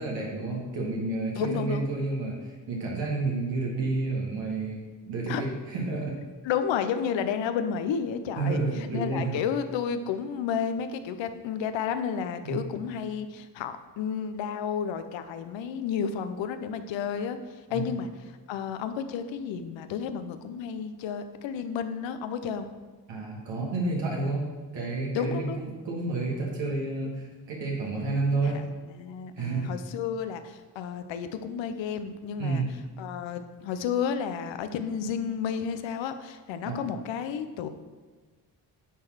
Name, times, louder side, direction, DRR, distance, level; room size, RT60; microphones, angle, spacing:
voice 1, 0.0-6.2 8.4-9.4 12.4-12.6 17.7-17.9 23.1-24.4 24.7-28.6 29.4-29.7 32.4-32.7 36.6-36.8, right 3 dB, 80° right, -2 dB, 1.8 m, -30 dB
voice 2, 1.3-1.9 5.3-5.4 6.4-8.6 8.9-17.4 17.7-18.1 18.5-22.7 25.1-25.6 28.4-28.7 29.0-32.6 33.0-37.7, left 7 dB, 85° left, 9 dB, 0.7 m, -31 dB
9.4 x 3.9 x 6.2 m, 1.4 s
cardioid pair, 65°, 44 cm